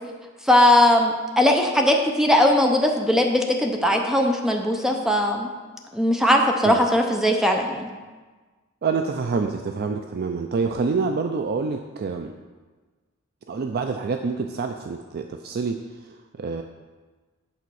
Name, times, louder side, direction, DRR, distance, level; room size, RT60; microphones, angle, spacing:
voice 1, 0.4-5.5 5.9-7.9, left 1 dB, ahead, 2 dB, 0.6 m, -19 dB
voice 2, 8.8-12.3 13.5-16.6, right 4 dB, 50° right, 5 dB, 0.4 m, -27 dB
8.3 x 4.2 x 6.2 m, 1.3 s
head